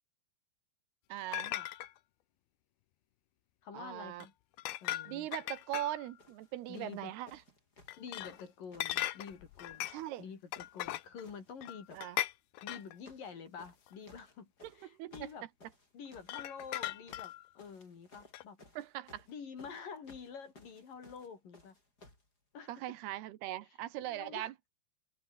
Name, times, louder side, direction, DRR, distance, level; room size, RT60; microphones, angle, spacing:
voice 1, 1.1-1.5 3.7-4.3 5.1-7.4 9.9-10.3 11.9-12.2 14.6-15.3 18.8-19.3 22.7-24.5, right 14 dB, 80° right, 3.1 m, -40 dB
sound 1, 1.3-1.9 4.2-4.3 4.6-6.2 7.9-8.4 8.8-10.1 10.5-11.3 11.6-13.0 13.9-14.0 16.2-17.5 18.3-18.4, left 15 dB, 75° left, 2.8 m, -38 dB
voice 2, 3.6-4.3 4.8-5.3 6.7-7.1 8.0-9.9 10.2-12.0 12.6-15.5 15.9-18.6 19.3-21.8 22.5-22.7 24.0-24.5, left 6 dB, 55° left, 5.3 m, -48 dB
sound 2, 5.6-5.8 6.2-9.7 9.9-10.9 11.2-12.1 12.7-13.3 13.6-22.3 23.1-23.2, left 2 dB, 20° left, 7.4 m, -60 dB
omnidirectional pair, 4.7 m